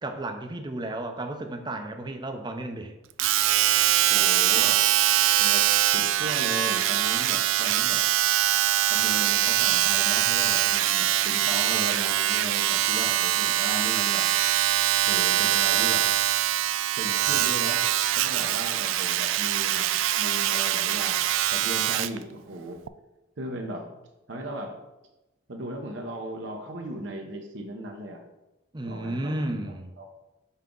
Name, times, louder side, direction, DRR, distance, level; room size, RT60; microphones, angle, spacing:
voice 1, 0.0-2.9 28.7-29.9, right 1 dB, 25° right, 6 dB, 0.6 m, -33 dB
Domestic sounds home sounds, 3.2-22.2 22.9-23.0, right 13 dB, 90° right, 0.3 m, -23 dB
voice 2, 3.9-4.8 5.4-5.7 5.9-8.0 8.9-14.3 15.1-16.1 17.0-17.8 18.1-19.9 20.2-21.2 21.5-22.8 23.4-24.0 24.3-24.8 25.5-28.2 28.8-30.1, right 1 dB, 70° right, 3 dB, 0.8 m, -36 dB
5.8 x 5.6 x 3.8 m, 0.97 s
head